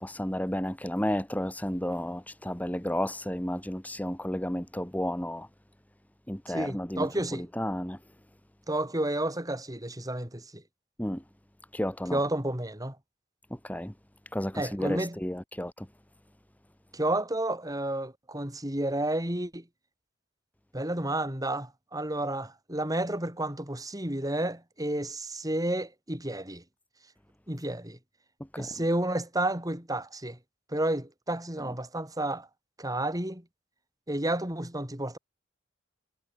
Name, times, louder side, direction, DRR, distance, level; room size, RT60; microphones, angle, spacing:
voice 1, 0.0-5.5 6.3-8.0 11.0-11.2 11.7-12.2 13.5-13.9 14.3-15.9 28.5-28.7, equal, 10° left, 2.3 m, -32 dB
voice 2, 6.5-7.5 8.7-10.6 12.1-13.0 14.5-15.2 16.9-19.7 20.7-26.6 27.5-28.0 28.6-30.4 30.7-32.5 32.8-33.4 34.1-35.2, right 1 dB, 20° right, 6.3 m, -31 dB
head